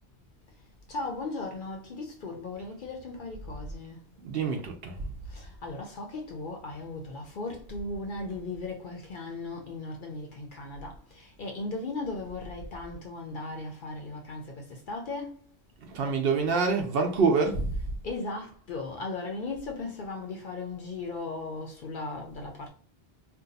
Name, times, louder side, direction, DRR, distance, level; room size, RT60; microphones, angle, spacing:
voice 1, 0.4-4.3 5.2-15.5 18.0-22.7, left 3 dB, 55° left, 0.7 m, -37 dB
voice 2, 4.2-5.1 15.8-17.8, right 4 dB, 60° right, 0.7 m, -26 dB
2.6 x 2.3 x 3.9 m
omnidirectional pair, 1.2 m